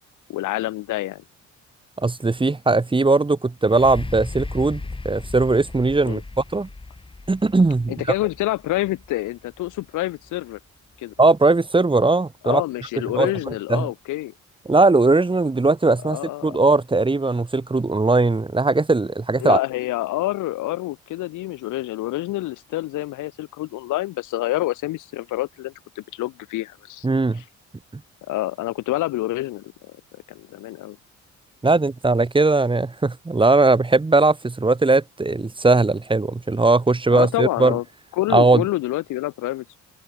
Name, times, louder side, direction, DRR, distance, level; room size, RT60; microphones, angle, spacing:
voice 1, 0.3-1.2 6.0-6.2 7.9-10.6 11.0-11.1 12.4-14.3 16.0-16.6 19.4-27.1 28.3-29.7 30.3-31.0 37.1-37.8 38.1-39.8, left 17 dB, 85° left, 1.0 m, -27 dB
voice 2, 2.0-6.7 7.3-7.9 11.2-12.6 13.1-13.3 13.7-13.9 14.7-19.6 27.0-27.4 27.9-28.0 31.6-37.8 38.3-38.6, right 3 dB, 15° right, 1.3 m, -19 dB
sound 1, 3.6-11.4 12.0-12.1, left 3 dB, 15° left, 2.3 m, -37 dB
cardioid pair, 90°, 30 cm